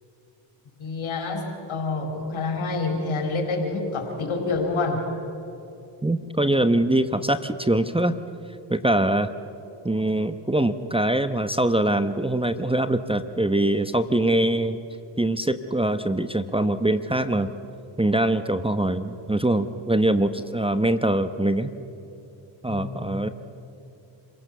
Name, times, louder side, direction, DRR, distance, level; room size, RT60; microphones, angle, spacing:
voice 1, 0.8-5.0 22.7-23.1, left 3 dB, 75° left, 2 dB, 4.4 m, -27 dB
voice 2, 6.0-8.1 8.7-9.3 9.8-14.8 15.2-17.5 18.0-21.7 22.6-23.3, right 1 dB, 10° right, 11 dB, 1.0 m, -23 dB
27.0 x 17.0 x 6.9 m, 2.8 s
supercardioid pair, 50°, 49 cm